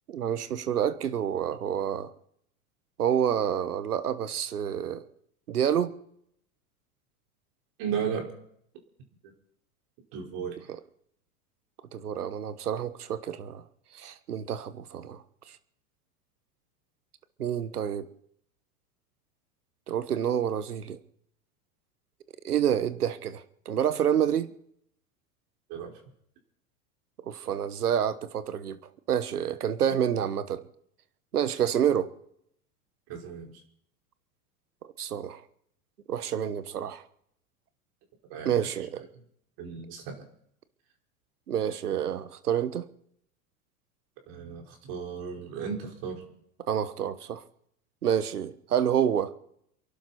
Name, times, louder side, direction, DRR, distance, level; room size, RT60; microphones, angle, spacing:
voice 1, 0.1-2.1 3.0-5.0 5.5-5.9 11.9-13.6 13.9-15.2 17.4-18.1 19.9-21.0 22.4-24.5 27.3-28.8 29.1-30.6 31.3-32.1 34.8-35.4 36.1-37.0 38.4-39.0 41.5-42.8 46.7-47.4 48.0-49.3, right 9 dB, 85° right, 14 dB, 1.3 m, -28 dB
voice 2, 7.8-8.3 10.1-10.7 25.7-26.0 33.1-33.5 38.3-38.7 39.1-39.2 39.6-40.3 44.3-46.2, right 7 dB, 50° right, 2 dB, 5.2 m, -35 dB
28.5 x 12.0 x 4.3 m, 0.70 s
hypercardioid pair, 95°, 44 cm